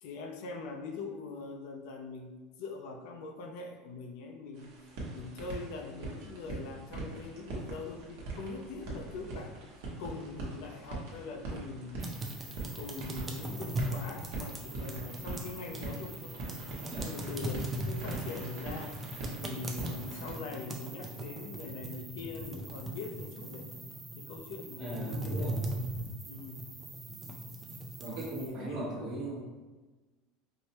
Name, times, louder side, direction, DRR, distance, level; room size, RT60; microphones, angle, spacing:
voice 1, 0.0-4.8 5.1-9.6 10.0-12.0 12.7-16.4 17.0-19.0 19.4-23.7 24.2-25.5 26.3-26.8 28.4-29.1, left 4 dB, 60° left, 2 dB, 0.4 m, -42 dB
sound 1, 4.5-20.3, right 2 dB, 65° right, 0.9 m, -42 dB
sound 2, 12.0-28.5, right 1 dB, 15° right, 0.4 m, -39 dB
voice 2, 24.8-25.7 27.1-27.2 28.0-29.5, right 2 dB, 30° right, -10 dB, 0.9 m, -39 dB
4.5 x 2.1 x 2.9 m, 1.2 s
cardioid pair, 170°, 0 cm